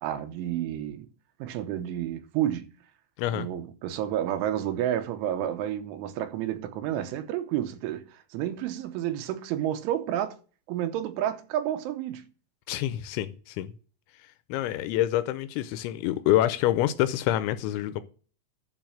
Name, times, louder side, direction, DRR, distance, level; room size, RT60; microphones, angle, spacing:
voice 1, 0.0-1.1 1.4-2.7 3.3-10.4 10.7-12.3, right 11 dB, 80° right, 3.2 m, -30 dB
voice 2, 12.7-13.7 14.5-18.0, left 13 dB, 85° left, 2.8 m, -26 dB
11.5 x 4.1 x 7.7 m
omnidirectional pair, 5.8 m